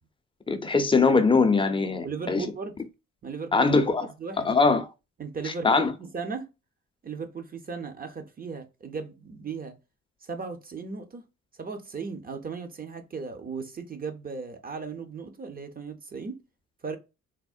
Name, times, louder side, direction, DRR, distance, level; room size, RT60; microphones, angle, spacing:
voice 1, 0.5-2.5 3.5-4.1 4.4-4.9 5.4-5.9, left 4 dB, 15° left, 0.5 m, -22 dB
voice 2, 2.0-2.7 3.2-4.5 5.2-6.5 7.0-9.8 10.2-11.2 11.6-16.4 16.8-17.0, right 5 dB, 30° right, 0.6 m, -36 dB
3.5 x 2.0 x 2.4 m
cardioid pair, 90°, 30 cm